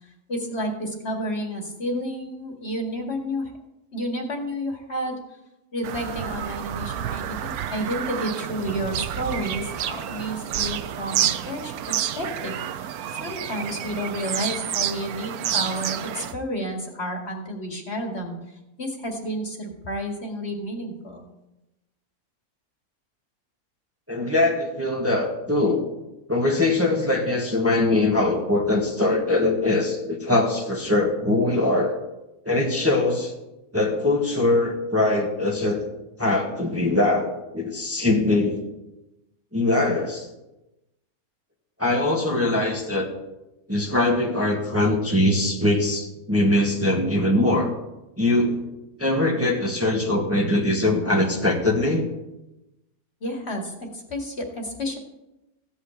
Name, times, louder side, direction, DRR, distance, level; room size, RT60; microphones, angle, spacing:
voice 1, 0.3-3.5 3.9-5.2 5.7-12.9 13.2-21.2 53.2-55.0, equal, 45° left, 1 dB, 2.3 m, -31 dB
Bird vocalization bird call bird song, 5.8-16.3, right 10 dB, 85° right, 1.2 m, -29 dB
voice 2, 24.1-25.8 26.3-31.9 32.4-33.3 33.7-35.8 36.2-38.7 39.5-40.3 41.8-43.1 43.7-47.7 48.2-48.6 49.0-52.1, left 2 dB, 10° right, -1 dB, 1.5 m, -22 dB
15.5 x 5.7 x 8.4 m, 0.96 s
omnidirectional pair, 1.5 m